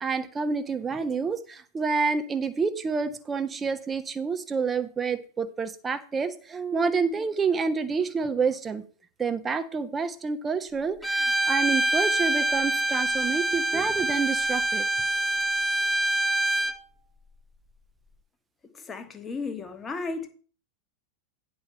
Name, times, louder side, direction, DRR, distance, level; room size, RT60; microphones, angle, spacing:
voice 1, 0.0-8.8 9.2-14.8, right 5 dB, 15° right, 10 dB, 1.0 m, -28 dB
Bowed string instrument, 11.0-16.8, right 2 dB, ahead, 0.7 m, -25 dB
voice 2, 18.7-20.3, left 4 dB, 20° left, 7 dB, 1.3 m, -34 dB
10.0 x 4.6 x 6.7 m, 0.41 s
figure-of-eight pair, 90°, 0 cm